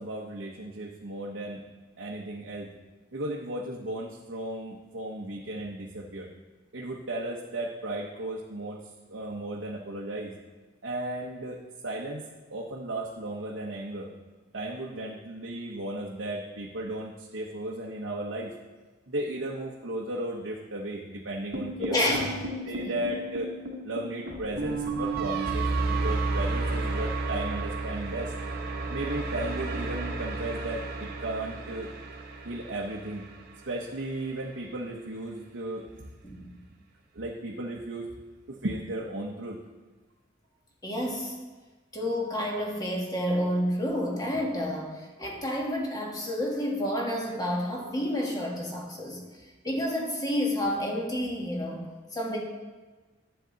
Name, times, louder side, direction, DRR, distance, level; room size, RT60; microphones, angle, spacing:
voice 1, 0.0-1.6 2.0-2.7 3.1-6.3 6.7-10.3 10.8-14.1 14.5-18.5 19.1-22.0 22.6-23.5 23.8-28.3 28.9-31.9 32.4-33.2 33.7-36.1 37.1-38.1 38.5-39.6, right 1 dB, 85° right, -2 dB, 1.0 m, -35 dB
sound 1, 21.5-33.7, right 3 dB, 55° right, 1.1 m, -32 dB
voice 2, 21.8-22.9 36.2-36.5 40.8-41.4 41.9-49.2 49.6-51.8 52.1-52.4, left 1 dB, 20° left, -1 dB, 1.6 m, -30 dB
10.0 x 8.1 x 4.0 m, 1.3 s
head